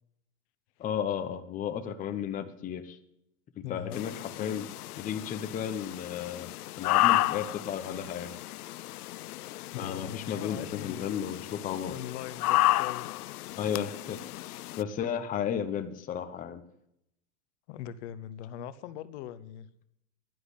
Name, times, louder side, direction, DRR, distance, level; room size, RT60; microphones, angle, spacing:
voice 1, 0.8-3.0 3.6-6.5 6.8-8.4 9.8-12.0 13.6-16.6, left 8 dB, 20° left, 8 dB, 0.9 m, -34 dB
voice 2, 3.6-4.0 9.7-11.0 11.9-13.1 17.7-19.7, left 10 dB, 50° left, 14 dB, 1.0 m, -40 dB
sound 1, 3.9-14.8, left 17 dB, 85° left, 0.5 m, -32 dB
11.0 x 10.5 x 8.2 m, 0.78 s
hypercardioid pair, 140°, 44 cm